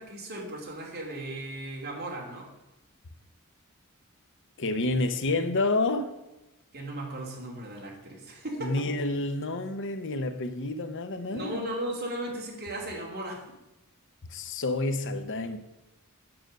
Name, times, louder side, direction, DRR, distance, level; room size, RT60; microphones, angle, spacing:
voice 1, 0.0-2.5 6.7-8.7 11.3-13.4, right 1 dB, 45° right, 2.8 m, -36 dB
voice 2, 4.6-6.1 8.6-11.6 14.3-15.6, left 2 dB, 60° left, 0.8 m, -29 dB
8.9 x 7.8 x 6.6 m
head